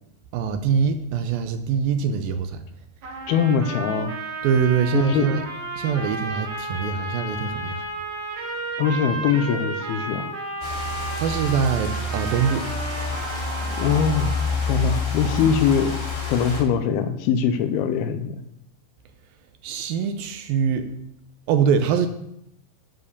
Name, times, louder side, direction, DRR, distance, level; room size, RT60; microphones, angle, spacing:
voice 1, 0.3-2.6 4.4-5.4 5.8-7.9 11.1-12.7 19.6-20.9 21.5-22.1, right 7 dB, 75° right, 8 dB, 2.3 m, -23 dB
sound 1, 3.0-14.7, right 2 dB, 50° right, 3.7 m, -33 dB
voice 2, 3.3-4.1 4.9-5.4 8.8-10.3 13.6-14.3 14.7-16.0 16.3-18.4, left 7 dB, 80° left, 9 dB, 2.6 m, -22 dB
sound 2, 10.6-16.6, left 3 dB, 20° left, 1.6 m, -28 dB
12.5 x 4.8 x 6.7 m, 0.78 s
omnidirectional pair, 4.5 m